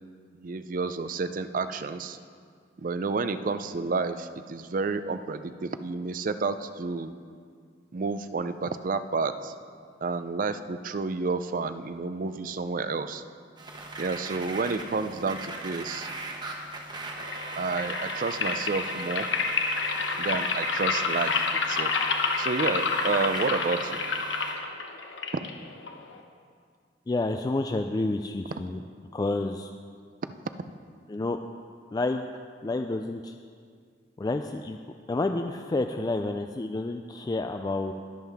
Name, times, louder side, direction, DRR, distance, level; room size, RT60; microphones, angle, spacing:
voice 1, 0.3-2.2 2.8-7.1 7.9-9.5 10.0-13.2 14.0-16.1 17.6-19.3 20.2-21.9 22.4-24.0, right 4 dB, 45° right, 11 dB, 0.4 m, -30 dB
sound 1, 13.6-24.5, right 2 dB, 25° right, 1.0 m, -38 dB
sound 2, 17.2-26.2, left 4 dB, 85° left, 1.0 m, -29 dB
voice 2, 27.1-28.8 29.1-29.7 31.1-31.4 31.9-32.2 32.6-33.3 34.2-34.8 35.1-37.9, left 2 dB, 20° left, 6 dB, 0.3 m, -29 dB
21.5 x 7.5 x 3.5 m, 2.1 s
head